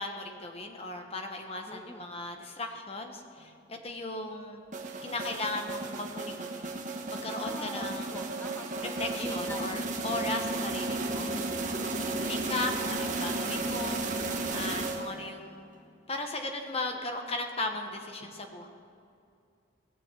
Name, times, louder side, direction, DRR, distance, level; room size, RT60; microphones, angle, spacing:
voice 1, 0.0-4.6 5.0-6.7 7.1-8.4 9.0-11.3 11.8-14.0 14.5-15.7 16.1-18.7, left 2 dB, 30° left, 4 dB, 1.2 m, -37 dB
voice 2, 1.7-2.1 7.4-9.8 10.1-10.2 11.6-11.9, left 1 dB, 10° left, 4 dB, 0.4 m, -45 dB
sound 1, 4.7-15.4, right 2 dB, 40° right, 1.1 m, -34 dB
18.0 x 7.0 x 7.6 m, 2.5 s
head